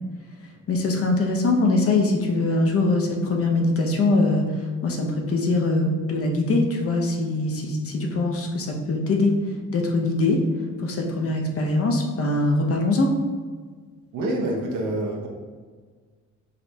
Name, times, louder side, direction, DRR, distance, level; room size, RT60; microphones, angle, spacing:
voice 1, 0.7-9.3 9.7-10.4 10.8-13.1, left 2 dB, 50° left, 2 dB, 0.6 m, -22 dB
voice 2, 14.1-15.3, right 1 dB, 85° right, 0 dB, 0.8 m, -26 dB
4.9 x 2.1 x 2.7 m, 1.5 s
cardioid pair, 90°, 30 cm